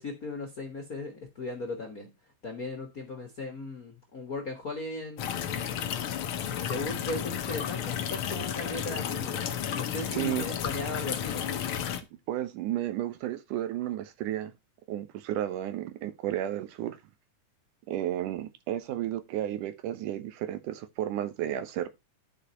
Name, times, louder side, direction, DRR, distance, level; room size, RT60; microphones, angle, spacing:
voice 1, 0.0-2.1 2.4-5.6 6.5-11.7, left 2 dB, 40° left, 1.3 m, -37 dB
sound 1, 5.2-12.0, left 9 dB, 75° left, 1.2 m, -32 dB
voice 2, 10.1-10.5 12.3-14.5 14.9-17.0 17.9-21.9, right 12 dB, 75° right, 2.4 m, -32 dB
11.5 x 5.1 x 4.3 m
omnidirectional pair, 3.7 m